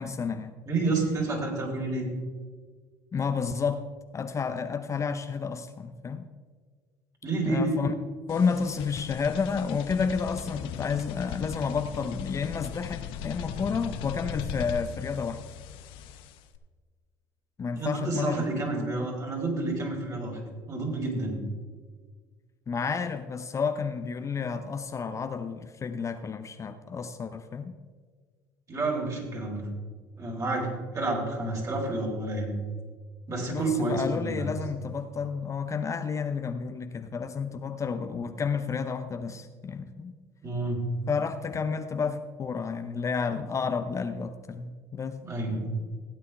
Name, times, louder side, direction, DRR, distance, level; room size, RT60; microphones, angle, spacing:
voice 1, 0.0-0.5 3.1-3.9 4.1-6.3 7.4-7.9 8.3-15.4 17.6-19.0 22.7-27.8 33.4-40.1 41.1-45.2, left 5 dB, 30° left, 9 dB, 0.7 m, -31 dB
voice 2, 0.7-2.1 7.2-7.8 17.7-20.4 20.7-21.4 28.7-29.6 30.2-32.6 33.3-34.5 40.4-40.8 45.2-45.7, right 2 dB, 35° right, -1 dB, 4.0 m, -29 dB
sound 1, 8.3-16.6, left 8 dB, 65° left, 0.7 m, -39 dB
16.0 x 9.1 x 3.4 m, 1.5 s
hypercardioid pair, 65°, 10 cm